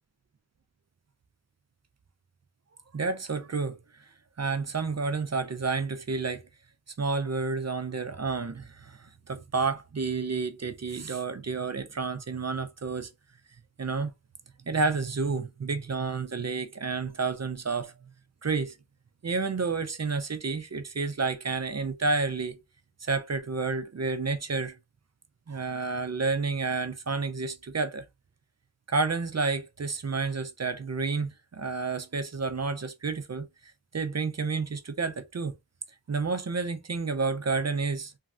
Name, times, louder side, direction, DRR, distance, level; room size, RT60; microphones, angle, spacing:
voice 1, 2.9-4.1 4.4-6.4 7.0-13.1 13.8-14.1 14.7-17.9 18.4-18.8 19.2-22.6 23.0-24.8 25.5-28.0 28.9-33.5 33.9-35.5 36.1-38.1, right 4 dB, 35° right, 0.4 m, -30 dB
3.0 x 2.5 x 2.4 m
wide cardioid pair, 50°, 49 cm